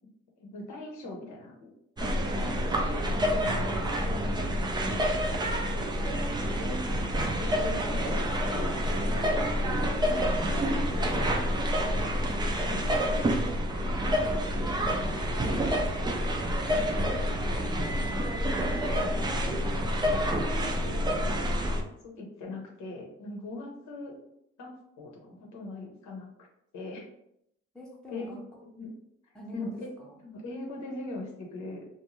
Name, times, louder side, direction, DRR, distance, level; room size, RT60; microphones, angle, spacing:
voice 1, 0.4-1.7 2.0-3.8 4.1-6.8 7.4-12.2 12.7-13.3 14.7-18.3 18.9-19.4 20.5-24.2 24.6-26.5 26.7-27.1 28.1-28.3 28.6-28.9 29.5-29.9 30.2-31.9, left 2 dB, 70° left, -1 dB, 0.8 m, -42 dB
sound 1, 2.0-21.8, equal, 15° right, 0.3 m, -28 dB
voice 2, 18.7-19.8 27.7-28.4 29.3-30.2, left 1 dB, 5° left, -4 dB, 0.7 m, -44 dB
2.6 x 2.2 x 3.0 m, 0.78 s
cardioid pair, 90°, 30 cm